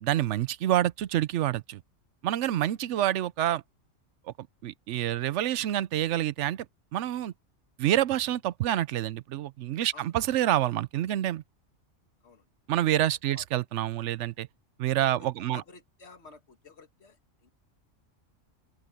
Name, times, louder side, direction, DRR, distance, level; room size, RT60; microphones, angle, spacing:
voice 1, 0.0-1.8 2.2-3.6 4.4-6.7 6.9-7.3 7.8-11.4 12.7-14.5 14.8-15.6, right 13 dB, 75° right, 0.9 m, -27 dB
voice 2, 9.9-10.4 12.2-12.5 13.3-13.4 15.1-17.5, left 4 dB, 60° left, 2.1 m, -52 dB
open air
omnidirectional pair, 1.3 m